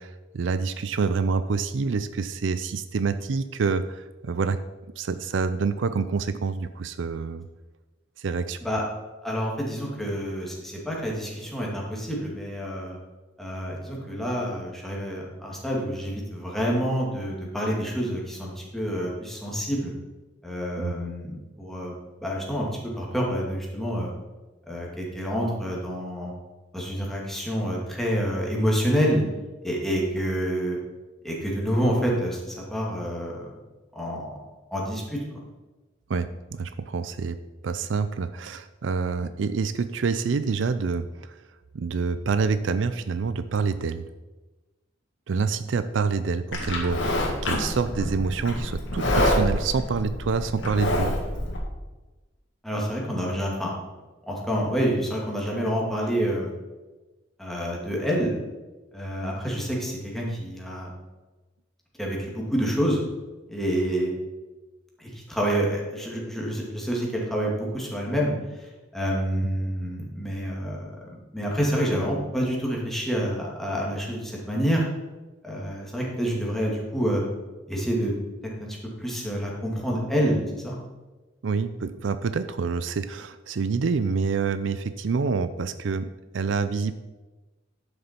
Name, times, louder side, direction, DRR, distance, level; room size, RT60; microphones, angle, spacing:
voice 1, 0.0-4.6 5.0-7.5 8.2-8.6 20.8-20.9 36.1-37.4 37.6-41.4 41.7-44.0 45.3-47.0 47.4-51.2 69.4-69.5 81.4-86.1 86.3-86.9, right 5 dB, 70° right, 12 dB, 0.4 m, -27 dB
voice 2, 9.2-13.0 13.4-19.9 20.4-21.9 22.2-22.7 23.0-24.1 24.7-26.3 26.7-29.2 29.6-30.8 31.2-33.6 33.9-34.4 34.7-35.2 52.6-53.7 54.3-56.5 57.4-58.3 58.9-60.9 62.0-63.0 63.5-64.1 65.0-74.8 75.4-77.2 77.7-78.1 78.6-80.8, equal, ahead, -3 dB, 2.2 m, -28 dB
Livestock farm animals working animals, 46.5-51.6, left 1 dB, 65° left, 1.9 m, -27 dB
11.0 x 6.6 x 4.4 m, 1.2 s
head